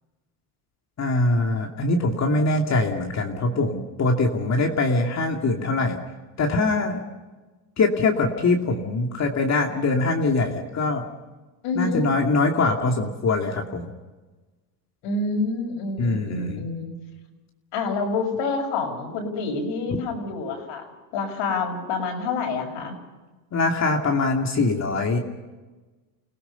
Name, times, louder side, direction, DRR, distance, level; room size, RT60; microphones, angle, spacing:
voice 1, 1.0-6.0 6.4-7.1 7.8-11.0 11.7-13.9 16.0-16.6 23.5-25.2, left 3 dB, 35° left, 2 dB, 2.6 m, -23 dB
voice 2, 11.6-12.1 15.0-16.9 17.7-22.9, left 3 dB, 65° left, 3 dB, 6.4 m, -27 dB
30.0 x 17.5 x 5.7 m, 1.2 s
supercardioid pair, 110°, 49 cm